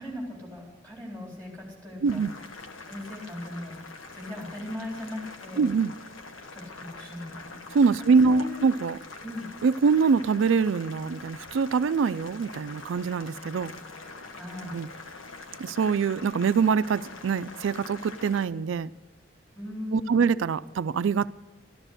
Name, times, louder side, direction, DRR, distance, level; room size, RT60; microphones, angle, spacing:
voice 1, 0.0-2.2 2.9-3.8 4.1-5.7 6.5-7.6 8.2-8.6 9.2-9.5 14.3-14.8 19.5-20.2, left 1 dB, 10° left, 4.0 m, -38 dB
voice 2, 2.0-2.3 5.6-5.9 7.7-9.0 9.6-13.7 14.7-14.9 15.6-18.9 19.9-21.3, right 5 dB, 75° right, 0.4 m, -24 dB
Boiling, 2.1-18.5, left 3 dB, 85° left, 1.2 m, -44 dB
13.0 x 12.0 x 6.5 m
head